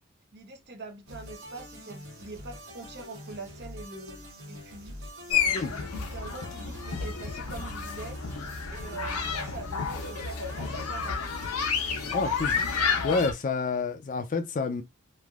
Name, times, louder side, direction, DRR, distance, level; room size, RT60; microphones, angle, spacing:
voice 1, 0.3-8.4 8.7-11.2, right 3 dB, 50° right, 0.7 m, -44 dB
sound 1, 1.1-12.8, equal, 80° right, 1.5 m, -45 dB
sound 2, 5.3-13.3, left 6 dB, 85° left, 0.6 m, -30 dB
voice 2, 12.1-12.6 13.0-14.8, left 4 dB, 35° left, 0.4 m, -28 dB
3.2 x 2.6 x 2.4 m
head